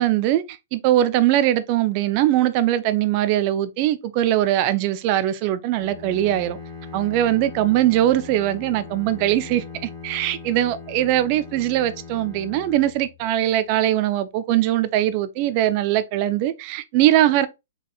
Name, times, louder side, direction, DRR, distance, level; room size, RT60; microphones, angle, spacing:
voice 1, 0.0-6.6 6.9-9.6 10.0-17.5, right 13 dB, 35° right, 0.5 m, -21 dB
Bowed string instrument, 5.7-13.7, left 4 dB, 15° right, 1.7 m, -40 dB
3.9 x 3.6 x 2.3 m
hypercardioid pair, 145°, 0 cm